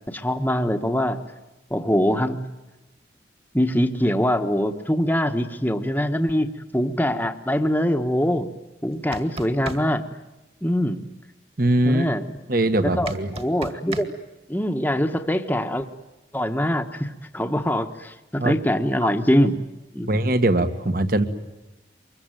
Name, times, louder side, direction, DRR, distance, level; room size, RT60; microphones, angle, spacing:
voice 1, 0.1-1.2 1.7-2.4 3.5-8.5 8.8-10.0 10.6-11.0 11.8-12.2 12.8-14.1 14.5-15.9 16.3-19.6 19.9-20.1, equal, 10° left, 5 dB, 1.2 m, -23 dB
sound 1, 8.9-9.8 13.1-14.1, right 2 dB, 30° right, 2.1 m, -33 dB
voice 2, 11.6-12.1 12.5-13.3 18.4-18.5 19.0-19.1 20.1-21.2, right 1 dB, 50° right, 10 dB, 1.7 m, -21 dB
25.5 x 22.5 x 9.1 m, 1.0 s
head